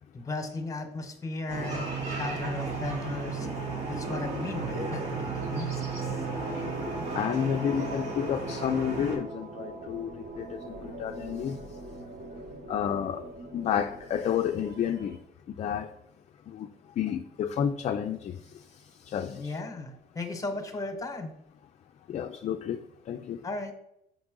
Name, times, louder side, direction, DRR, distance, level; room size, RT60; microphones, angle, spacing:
voice 1, 0.1-3.5 3.9-6.1 19.4-21.3 23.4-23.7, left 2 dB, 20° left, 1.1 m, -36 dB
sound 1, 1.5-9.2, right 3 dB, 85° right, 2.1 m, -34 dB
sound 2, 2.1-15.2, right 2 dB, 50° right, 1.0 m, -42 dB
voice 2, 7.1-10.1 10.4-11.6 12.7-13.2 13.5-15.2 15.5-15.9 16.5-16.7 17.0-18.3 19.1-19.5 22.1-22.8 23.1-23.4, left 8 dB, 40° left, 0.4 m, -30 dB
6.0 x 5.2 x 3.7 m
cardioid pair, 110°, 17 cm